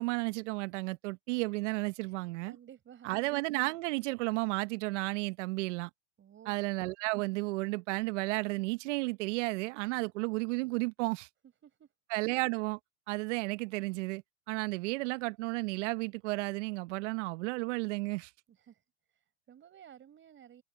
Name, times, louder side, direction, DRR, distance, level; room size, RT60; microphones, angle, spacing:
voice 1, 0.0-2.6 3.0-5.9 6.5-11.3 12.1-12.8 13.1-14.2 14.5-18.3, right 24 dB, 60° right, 1.4 m, -33 dB
voice 2, 2.4-3.1 6.2-6.5 11.6-11.9 18.5-18.8 19.1-20.6, right 9 dB, 30° right, 5.9 m, -55 dB
hypercardioid pair, 115°, 41 cm